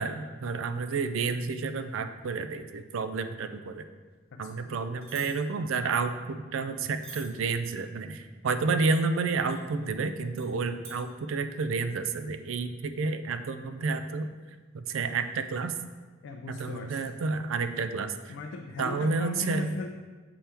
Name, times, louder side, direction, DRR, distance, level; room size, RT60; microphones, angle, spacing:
voice 1, 0.0-3.8 4.4-14.3 14.7-15.7 16.6-18.3 18.8-19.8, right 4 dB, 75° right, 9 dB, 0.4 m, -30 dB
voice 2, 4.3-4.6 16.2-17.1 18.3-19.9, left 3 dB, 65° left, 4 dB, 0.4 m, -38 dB
sound 1, 5.0-5.3 7.0-7.3 9.5-9.6 10.4-10.5 10.8-11.0, right 3 dB, 50° right, 1.0 m, -44 dB
7.1 x 4.3 x 3.4 m, 1.4 s
head